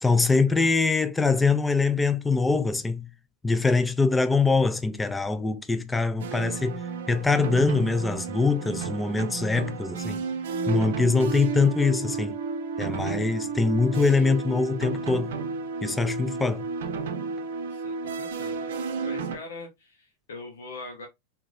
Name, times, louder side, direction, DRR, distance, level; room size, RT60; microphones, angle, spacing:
voice 1, 0.0-3.1 3.4-10.2 10.7-12.4 12.8-15.4 15.8-16.6, left 4 dB, 10° left, 0.5 m, -23 dB
sound 1, 6.2-19.4, right 4 dB, 55° right, 0.7 m, -32 dB
voice 2, 17.7-18.7 19.0-21.1, left 3 dB, 65° left, 1.1 m, -42 dB
4.8 x 3.5 x 2.6 m
figure-of-eight pair, 90°, 0 cm